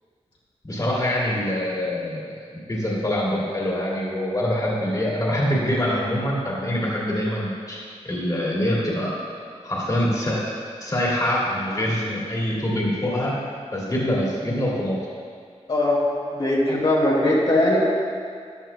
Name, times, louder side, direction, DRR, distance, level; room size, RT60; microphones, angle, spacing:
voice 1, 0.6-9.1 9.6-10.5 10.8-13.3 13.7-15.0, left 1 dB, 30° left, -5 dB, 2.6 m, -24 dB
voice 2, 16.3-17.8, left 1 dB, 55° left, -7 dB, 2.3 m, -20 dB
14.0 x 10.5 x 2.3 m, 2.2 s
wide cardioid pair, 80°, 12 cm